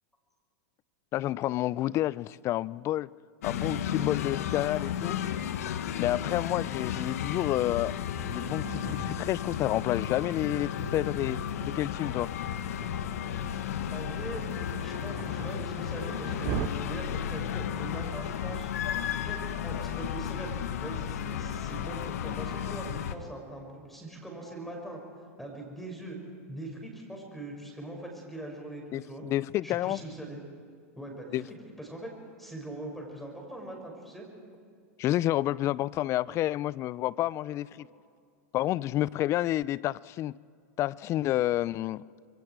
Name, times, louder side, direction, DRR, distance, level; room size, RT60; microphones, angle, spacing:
voice 1, 1.1-3.1 3.4-5.2 6.0-7.9 8.2-12.3 28.9-30.0 31.3-31.4 35.0-37.9 38.5-40.4 40.8-42.0, left 14 dB, 35° left, 0.4 m, -29 dB
sound 1, 3.4-23.2, left 9 dB, 80° left, 1.1 m, -33 dB
Thunder, 8.0-16.7, right 19 dB, 45° right, 0.5 m, -43 dB
voice 2, 13.9-14.5 14.8-18.7 19.2-25.0 25.4-26.2 26.5-29.2 29.6-30.4 31.0-34.3, right 1 dB, 5° left, 6.0 m, -41 dB
26.5 x 22.5 x 4.7 m
supercardioid pair, 125°, 8 cm